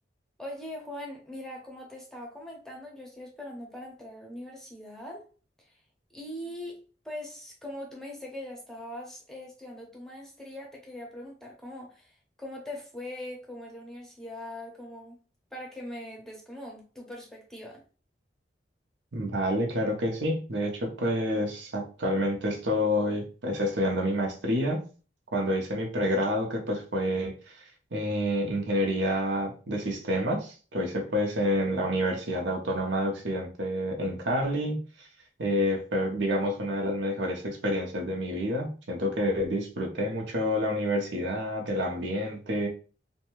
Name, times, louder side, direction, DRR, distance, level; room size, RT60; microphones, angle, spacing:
voice 1, 0.4-5.2 5.6-5.7 6.1-6.8 7.0-15.2 15.5-17.8, left 1 dB, 5° left, 0.7 m, -41 dB
voice 2, 19.1-24.8 25.3-27.6 27.9-35.1 35.4-42.7, equal, 85° right, 0.7 m, -28 dB
2.6 x 2.2 x 3.0 m
head